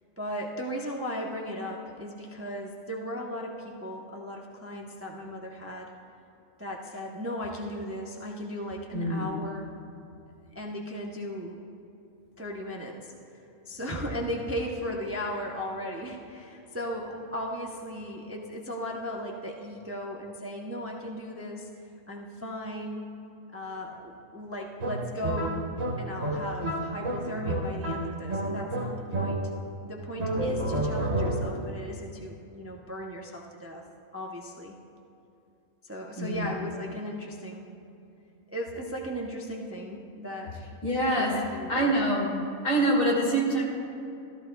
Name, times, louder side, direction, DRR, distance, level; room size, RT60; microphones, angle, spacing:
voice 1, 0.2-5.9 6.6-9.7 10.5-11.6 12.4-13.1 13.7-21.7 22.1-23.1 23.5-25.6 26.0-29.4 29.8-33.8 34.1-34.7 35.8-37.7 38.5-40.6 41.1-41.9 43.0-43.3, equal, 15° right, -1 dB, 0.6 m, -36 dB
voice 2, 8.9-9.3 36.2-36.5 40.8-41.4 41.7-42.3 42.6-43.6, right 1 dB, 80° left, -4 dB, 2.8 m, -25 dB
sound 1, 24.8-29.8 30.2-31.7, right 1 dB, 70° right, 1.6 m, -30 dB
15.5 x 13.5 x 2.3 m, 2.7 s
omnidirectional pair, 1.4 m